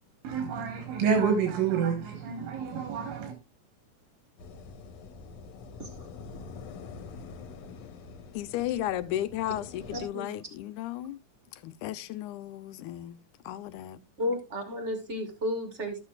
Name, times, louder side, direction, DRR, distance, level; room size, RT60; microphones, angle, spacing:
voice 1, 0.2-3.4, right 6 dB, 90° right, 2.8 m, -28 dB
sound 1, 4.4-10.1, left 4 dB, 65° left, 2.0 m, -45 dB
voice 2, 8.3-11.2 11.6-14.0, left 13 dB, 80° left, 2.0 m, -34 dB
voice 3, 9.9-10.4 14.2-16.0, left 1 dB, 50° right, 0.8 m, -33 dB
12.5 x 8.2 x 2.3 m
omnidirectional pair, 3.6 m